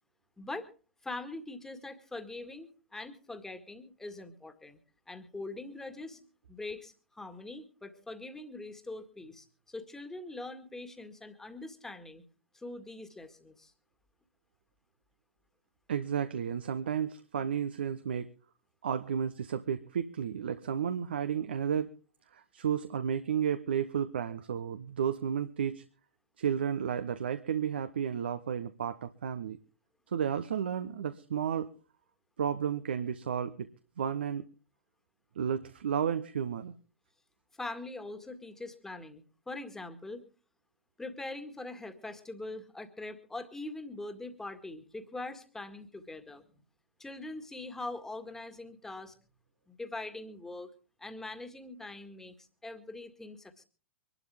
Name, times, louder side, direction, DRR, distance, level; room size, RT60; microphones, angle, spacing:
voice 1, 0.4-0.7 1.0-4.8 5.1-12.2 12.5-13.7 37.6-40.2 41.0-46.4 47.0-49.1 49.7-50.7 51.0-53.7, left 2 dB, 5° left, 8 dB, 1.9 m, -43 dB
voice 2, 15.9-18.3 18.8-21.9 22.3-25.8 26.4-29.6 30.1-31.7 32.4-33.7 34.0-34.5 35.4-36.7, right 8 dB, 60° right, 10 dB, 1.0 m, -32 dB
24.5 x 12.0 x 3.5 m, 0.37 s
figure-of-eight pair, 105°, 6 cm